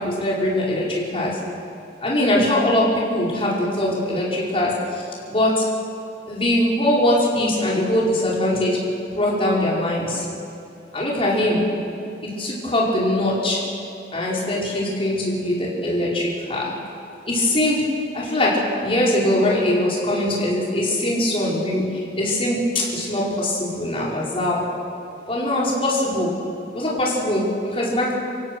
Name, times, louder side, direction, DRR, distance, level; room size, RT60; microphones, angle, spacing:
voice 1, 0.0-1.4 2.0-5.7 6.3-8.8 9.1-10.3 10.9-11.7 12.2-13.6 14.1-16.7 17.3-17.9 18.1-24.6 25.3-26.3 26.7-28.2, left 1 dB, 30° left, -5 dB, 5.3 m, -22 dB
27.5 x 16.5 x 6.4 m, 2.8 s
head